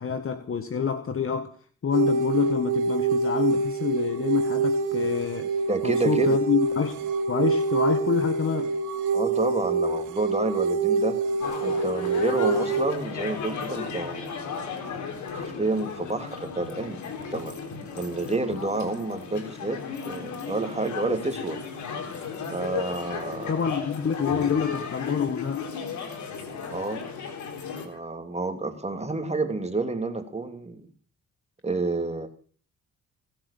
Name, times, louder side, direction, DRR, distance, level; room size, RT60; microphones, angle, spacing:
voice 1, 0.0-1.5 1.8-5.5 5.8-8.7 23.5-25.6, left 7 dB, 45° left, 9 dB, 1.6 m, -27 dB
sound 1, 1.9-12.8, right 4 dB, 85° right, 3.3 m, -26 dB
voice 2, 5.7-6.4 9.1-11.2 11.6-14.4 15.1-17.5 17.9-21.6 22.5-23.6 26.7-27.0 27.8-30.8 31.6-32.3, right 3 dB, 20° right, 6 dB, 2.8 m, -29 dB
sound 2, 11.4-27.9, left 6 dB, 75° left, 3.8 m, -35 dB
20.0 x 8.0 x 7.2 m, 0.42 s
supercardioid pair, 65°, 30 cm